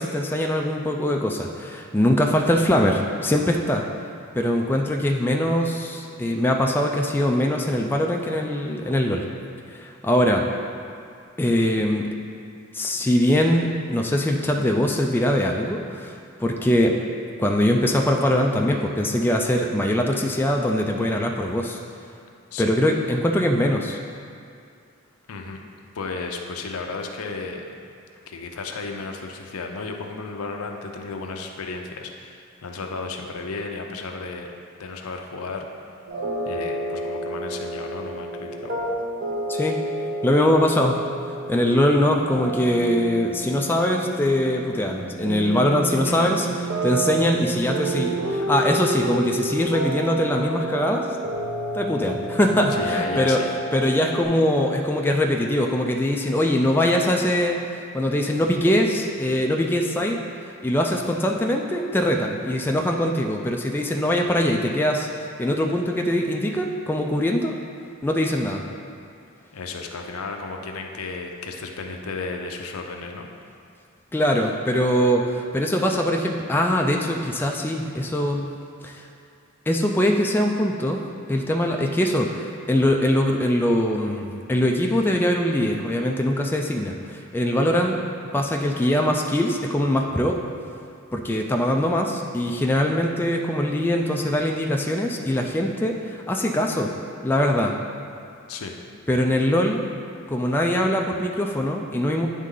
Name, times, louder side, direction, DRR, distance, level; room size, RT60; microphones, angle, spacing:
voice 1, 0.0-3.8 4.4-9.2 9.7-10.5 11.4-12.1 12.7-17.0 17.4-21.8 22.6-24.0 39.5-39.8 40.2-41.0 41.5-51.1 51.7-53.4 53.7-57.6 57.9-60.2 60.6-67.5 68.0-68.6 74.1-78.5 78.8-79.1 79.7-88.0 88.3-90.4 91.1-96.9 97.2-97.7 99.1-99.8 100.3-102.3, left 1 dB, 10° left, 1 dB, 0.3 m, -22 dB
voice 2, 25.3-25.6 25.9-27.7 28.3-34.5 34.8-35.7 36.4-38.7 46.0-46.3 52.7-53.5 69.5-73.3 98.5-98.7, left 3 dB, 80° left, 3 dB, 0.6 m, -33 dB
sound 1, 36.1-54.2, right 2 dB, 55° right, 0.8 m, -30 dB
9.2 x 3.6 x 3.8 m, 2.4 s
head